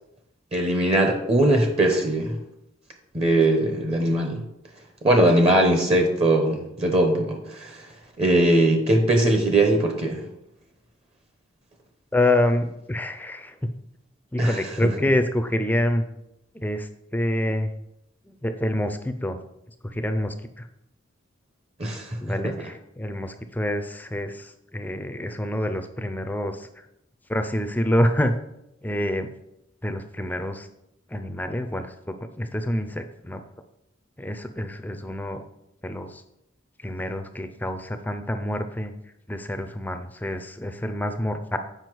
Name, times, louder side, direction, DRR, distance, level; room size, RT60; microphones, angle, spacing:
voice 1, 0.5-2.4 3.1-4.4 5.0-7.9 8.2-10.2 14.4-14.9 21.8-22.2, right 1 dB, 30° right, 4 dB, 0.8 m, -20 dB
voice 2, 12.1-13.7 14.3-16.0 16.5-17.7 18.3-19.4 19.8-20.7 22.2-26.7 27.3-28.3 28.8-29.3 29.8-30.7 31.1-33.4 34.2-35.4 35.8-36.2 36.8-38.9 39.3-41.6, left 1 dB, 10° left, 8 dB, 0.5 m, -27 dB
7.9 x 5.3 x 4.6 m, 0.84 s
head